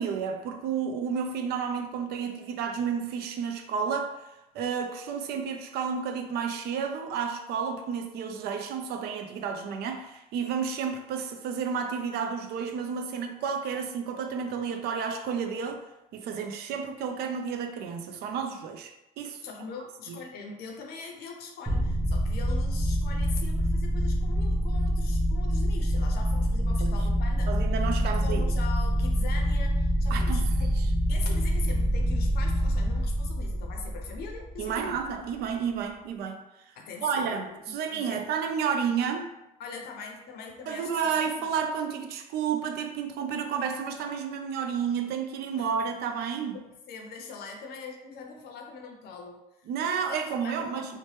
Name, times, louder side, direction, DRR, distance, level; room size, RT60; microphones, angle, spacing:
voice 1, 0.0-4.1 4.5-15.8 16.1-18.9 19.2-19.4 20.1-20.2 26.8-26.9 27.5-28.4 30.1-30.9 34.6-36.4 37.0-39.3 40.7-46.6 49.7-51.0, right 6 dB, 70° right, 0.4 m, -31 dB
voice 2, 19.4-27.5 28.0-30.7 31.1-35.0 36.7-38.3 39.6-41.5 45.6-45.7 46.5-49.7 50.1-51.0, left 5 dB, 70° left, 0.6 m, -42 dB
sound 1, 21.7-35.0, equal, 5° right, 0.6 m, -26 dB
2.9 x 2.1 x 3.1 m
cardioid pair, 110°, 17 cm